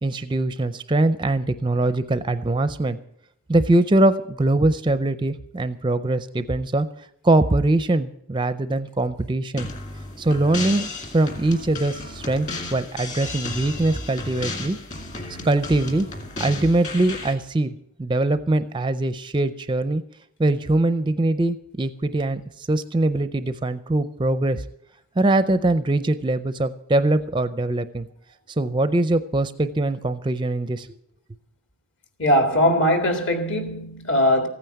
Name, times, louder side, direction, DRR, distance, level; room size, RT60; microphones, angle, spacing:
voice 1, 0.0-3.0 3.5-6.9 7.2-9.7 10.2-10.9 11.1-14.8 15.4-16.1 16.4-20.0 20.4-24.6 25.2-28.1 28.5-30.9, right 2 dB, 20° right, 0.4 m, -22 dB
sound 1, 9.6-17.3, left 3 dB, 35° left, 2.1 m, -34 dB
voice 2, 32.2-34.5, equal, 55° left, 2.1 m, -20 dB
15.0 x 9.2 x 7.9 m
head